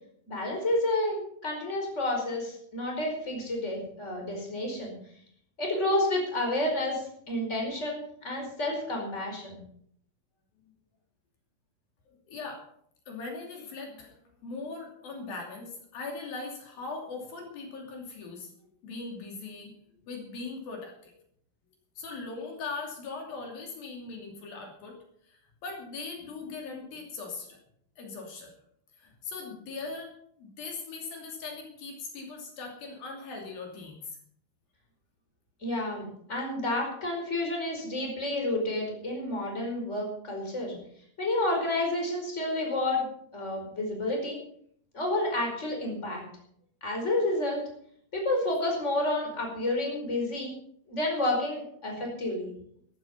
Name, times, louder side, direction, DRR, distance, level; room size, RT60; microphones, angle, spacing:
voice 1, 0.3-4.9 5.6-9.6 35.6-40.7 41.2-43.1 43.3-44.4 44.9-46.2 46.8-47.6 48.1-50.5 50.9-52.5, left 1 dB, 20° left, 1 dB, 5.0 m, -30 dB
voice 2, 12.1-12.6 13.1-19.7 20.1-21.1 22.0-25.0 25.3-27.6 28.0-28.5 29.0-34.2 40.7-40.9, left 4 dB, 75° left, 1 dB, 4.5 m, -40 dB
14.0 x 13.5 x 5.5 m, 0.65 s
omnidirectional pair, 4.2 m